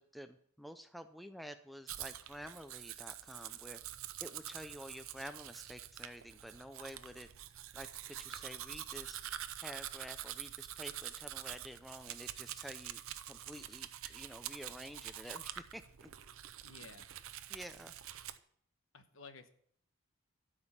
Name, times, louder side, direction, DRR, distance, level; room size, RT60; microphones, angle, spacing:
voice 1, 0.0-3.8 4.2-7.3 7.7-9.2 9.6-13.0 13.3-16.1 17.5-17.9, equal, ahead, 9 dB, 0.4 m, -50 dB
Domestic sounds home sounds, 1.9-18.4, right 12 dB, 70° right, 0.6 m, -46 dB
voice 2, 16.6-17.1 18.9-19.5, left 4 dB, 65° left, 8 dB, 1.1 m, -53 dB
12.5 x 5.2 x 7.1 m, 0.64 s
head